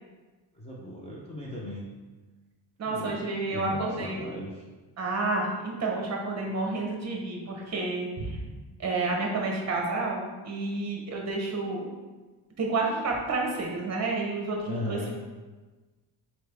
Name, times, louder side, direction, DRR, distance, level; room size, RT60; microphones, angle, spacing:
voice 1, 0.5-1.9 2.9-4.6 14.7-15.1, left 1 dB, 15° left, -7 dB, 0.3 m, -37 dB
voice 2, 2.8-4.2 5.0-8.4 8.8-11.9 12.6-15.1, right 3 dB, 35° right, -1 dB, 0.8 m, -30 dB
4.0 x 3.3 x 3.3 m, 1.3 s
wide cardioid pair, 165°, 45 cm